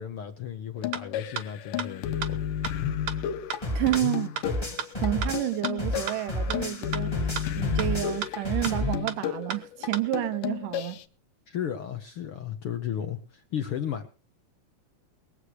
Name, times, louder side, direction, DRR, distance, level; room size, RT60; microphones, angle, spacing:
voice 1, 0.0-2.4 11.5-14.1, left 9 dB, 65° left, 1.4 m, -34 dB
sound 1, 0.8-11.0, left 10 dB, 85° left, 2.5 m, -33 dB
sound 2, 0.9-1.0 1.4-1.5 1.8-1.9 2.2-2.3 2.6-2.7 3.1-3.2 3.5-3.6 3.9-4.0 4.4-4.5 4.8-4.9 5.2-5.3 5.6-5.7 6.1-6.2 6.5-6.6 6.9-7.0 7.4-7.5 7.8-7.9 8.2-8.3 8.6-8.7 9.1-9.2 9.5-9.6 9.9-10.0, right 9 dB, 65° right, 2.2 m, -32 dB
sound 3, 3.6-6.9 7.1-9.0, equal, 10° left, 1.3 m, -31 dB
voice 2, 3.7-4.3 5.0-7.1 7.6-11.0, right 16 dB, 85° right, 2.5 m, -30 dB
22.0 x 8.1 x 4.8 m
omnidirectional pair, 3.7 m